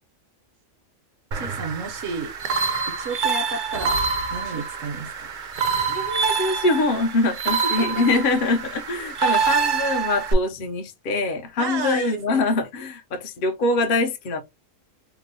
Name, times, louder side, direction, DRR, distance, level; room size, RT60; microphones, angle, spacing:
sound 1, 1.3-10.3, right 5 dB, 50° right, 0.6 m, -26 dB
voice 1, 1.3-2.3 3.0-3.9 4.3-5.3 7.8-8.2 11.6-12.4, right 4 dB, 75° right, 1.1 m, -31 dB
voice 2, 5.9-14.4, left 3 dB, 55° left, 0.6 m, -24 dB
2.9 x 2.0 x 3.9 m
omnidirectional pair, 1.3 m